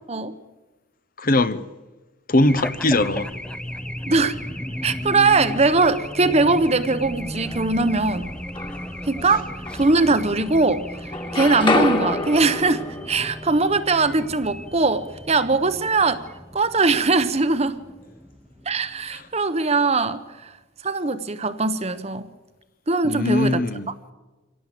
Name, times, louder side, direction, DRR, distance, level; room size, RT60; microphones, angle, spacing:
voice 1, 1.2-1.6 2.3-3.3 19.1-19.2 23.0-23.9, left 2 dB, 45° left, 0.9 m, -20 dB
Race car auto racing / Alarm, 2.4-19.3, equal, 5° left, 0.9 m, -35 dB
voice 2, 4.1-4.4 4.8-8.3 9.1-9.5 9.8-10.8 11.3-16.2 16.5-17.8 18.7-20.5 20.8-22.3 22.9-23.6, right 3 dB, 30° right, 1.0 m, -21 dB
sound 1, 8.2-9.1 9.7-10.7 10.9-14.9, left 2 dB, 25° left, 2.0 m, -28 dB
25.5 x 18.0 x 7.8 m
head